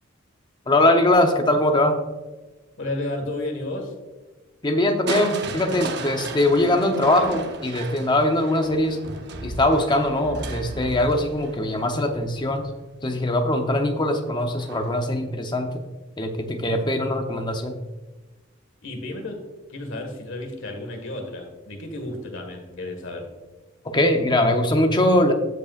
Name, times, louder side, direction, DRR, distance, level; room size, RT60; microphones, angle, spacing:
voice 1, 0.7-2.0 4.6-9.0 9.4-12.6 13.0-15.7 16.2-17.7 23.9-25.3, left 1 dB, 20° left, 5 dB, 0.8 m, -21 dB
voice 2, 2.8-3.9 18.8-23.3, left 2 dB, 65° left, 3 dB, 1.7 m, -32 dB
Crushing, 5.1-13.0 14.6-15.1 15.6-15.7, right 2 dB, 55° right, 0.8 m, -34 dB
15.5 x 5.4 x 2.4 m, 1.2 s
head